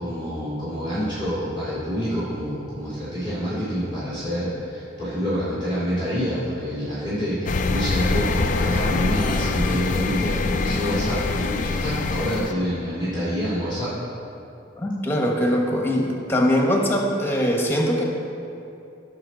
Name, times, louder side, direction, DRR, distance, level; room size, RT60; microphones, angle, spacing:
voice 1, 0.0-13.9, equal, 25° right, -11 dB, 2.6 m, -27 dB
sound 1, 7.5-12.5, left 3 dB, 45° left, 0.5 m, -24 dB
voice 2, 14.8-18.0, equal, 15° left, 0 dB, 1.3 m, -22 dB
16.0 x 5.9 x 4.0 m, 2.8 s
head